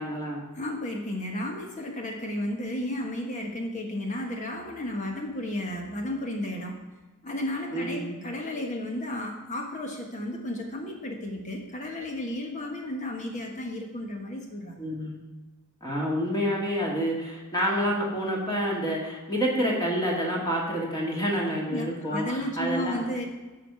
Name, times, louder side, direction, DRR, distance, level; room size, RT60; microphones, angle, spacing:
voice 1, 0.0-0.4 7.7-8.1 14.8-15.1 15.8-22.2 22.6-23.0, equal, 20° left, -3 dB, 2.2 m, -28 dB
voice 2, 0.5-6.8 7.2-14.8 21.7-23.2, left 1 dB, 35° left, 2 dB, 1.4 m, -33 dB
14.0 x 4.9 x 6.8 m, 1.2 s
head